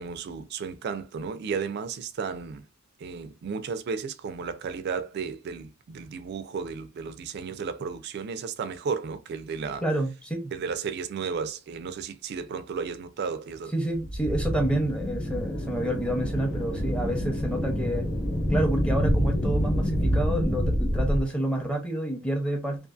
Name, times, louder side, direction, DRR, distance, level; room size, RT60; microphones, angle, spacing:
voice 1, 0.0-2.6 3.0-9.8 10.5-13.7, right 5 dB, 55° right, 0.3 m, -33 dB
voice 2, 9.8-10.5 13.7-18.1 18.5-22.9, right 1 dB, 5° left, 0.6 m, -28 dB
sound 1, 14.0-21.2, equal, 80° left, 1.2 m, -27 dB
2.5 x 2.4 x 2.3 m
head